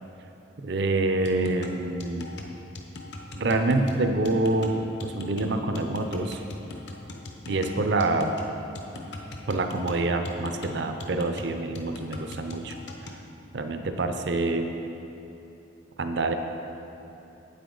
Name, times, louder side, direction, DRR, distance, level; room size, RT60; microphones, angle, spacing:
voice 1, 0.6-2.3 3.4-6.4 7.5-8.4 9.5-12.8 13.1-13.2 13.5-14.7 16.0-16.3, right 2 dB, 65° right, 6 dB, 0.5 m, -26 dB
sound 1, 1.2-13.2, left 2 dB, 60° left, 0.8 m, -40 dB
8.6 x 8.5 x 3.8 m, 2.9 s
head